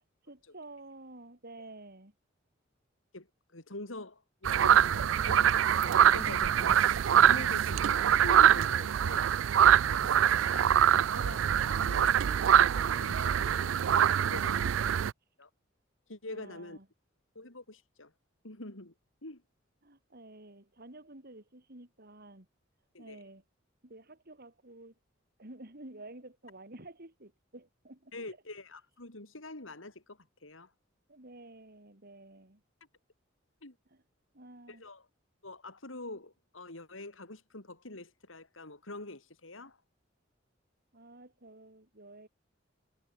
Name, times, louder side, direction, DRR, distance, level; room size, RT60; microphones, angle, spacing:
voice 1, 0.0-2.1 9.7-10.5 14.2-14.7 16.3-16.9 19.8-22.5 23.0-23.4 23.8-24.9 25.4-28.3 31.1-32.6 33.9-34.0 34.3-34.8 40.9-42.3, right 2 dB, 50° right, 4.2 m, -51 dB
voice 2, 3.5-5.5 5.8-6.8 7.2-9.3 9.8-14.6 15.4-15.5 16.1-16.8 17.3-18.1 18.4-18.9 19.2-19.4 22.9-23.2 28.1-30.7 33.6-33.7 34.7-35.1 35.4-39.8, left 2 dB, 85° left, 4.3 m, -45 dB
sound 1, 4.5-15.1, right 9 dB, 70° right, 0.4 m, -24 dB
head